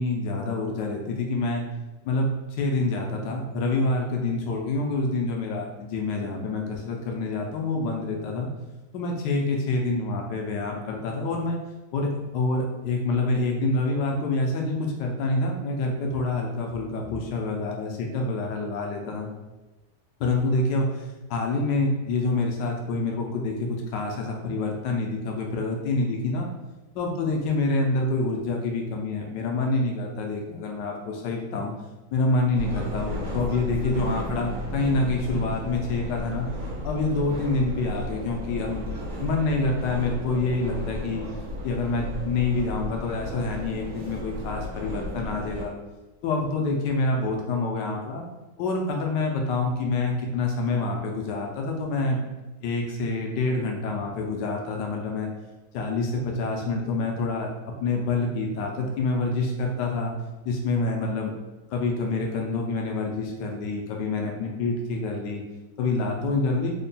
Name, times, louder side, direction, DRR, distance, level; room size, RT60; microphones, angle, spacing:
voice 1, 0.0-1.6 2.0-8.5 8.9-11.6 11.9-19.3 20.2-26.5 27.0-31.7 32.1-36.5 36.8-38.9 39.2-41.2 41.6-45.7 46.2-48.2 48.6-52.2 52.6-55.3 55.7-60.1 60.5-61.3 61.7-65.4 65.8-66.7, left 3 dB, 85° left, 1 dB, 1.2 m, -27 dB
sound 1, 32.5-45.6, left 1 dB, 85° right, 1.5 m, -34 dB
3.6 x 2.2 x 3.9 m, 1.1 s
omnidirectional pair, 1.9 m